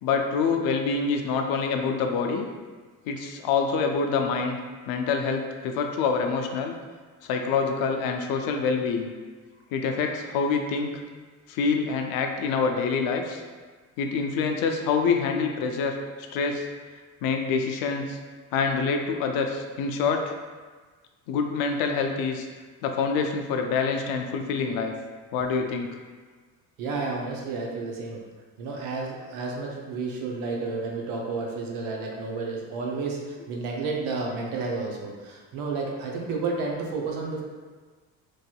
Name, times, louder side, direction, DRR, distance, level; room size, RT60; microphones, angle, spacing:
voice 1, 0.0-2.5 3.1-4.6 4.9-6.8 7.3-9.1 9.7-10.9 11.5-13.4 14.0-16.0 16.3-16.7 17.2-18.2 18.5-20.3 21.3-22.5 22.8-24.9 25.3-25.9, left 5 dB, 70° left, 4 dB, 0.5 m, -26 dB
voice 2, 26.8-28.2 28.6-37.4, right 4 dB, 75° right, -1 dB, 0.7 m, -31 dB
3.1 x 2.7 x 2.2 m, 1.4 s
supercardioid pair, 70°, 37 cm